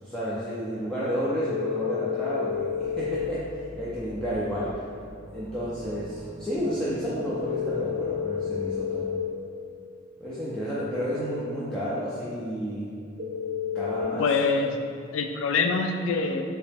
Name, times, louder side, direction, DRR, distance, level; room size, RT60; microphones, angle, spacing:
voice 1, 0.0-4.8 5.3-9.2 10.2-12.9 13.7-14.3, equal, 5° left, -10 dB, 0.4 m, -31 dB
sound 1, 1.2-3.2 7.2-9.2 13.2-14.0, left 7 dB, 45° right, 0.6 m, -30 dB
sound 2, 2.5-8.8, equal, 35° left, 1.4 m, -46 dB
voice 2, 14.2-14.8 15.1-16.4, left 4 dB, 70° left, 7 dB, 0.3 m, -24 dB
3.1 x 3.0 x 3.3 m, 2.3 s
head